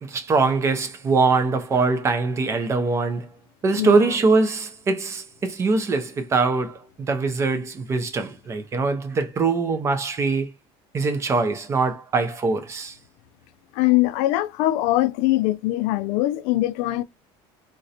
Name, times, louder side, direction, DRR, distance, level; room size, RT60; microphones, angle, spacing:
voice 1, 0.0-3.3 3.6-10.5 10.9-13.0, right 4 dB, 20° right, 0.4 m, -22 dB
voice 2, 3.7-4.1 13.7-17.0, left 16 dB, 70° left, 0.4 m, -22 dB
3.8 x 2.1 x 2.7 m
cardioid pair, 155°, 13 cm